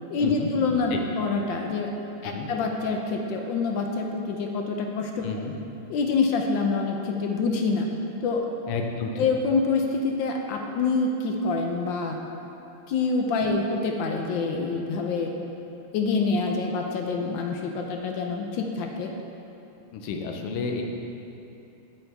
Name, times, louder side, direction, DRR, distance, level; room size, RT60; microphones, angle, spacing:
voice 1, 0.1-1.9 2.2-5.4 5.9-7.9 8.2-8.4 9.2-12.2 12.9-15.3 15.9-19.1, left 4 dB, 70° left, 2 dB, 1.2 m, -26 dB
voice 2, 5.2-5.5 8.7-9.3 19.9-20.8, left 4 dB, 90° left, 3 dB, 1.7 m, -31 dB
8.4 x 7.0 x 3.4 m, 2.9 s
omnidirectional pair, 2.4 m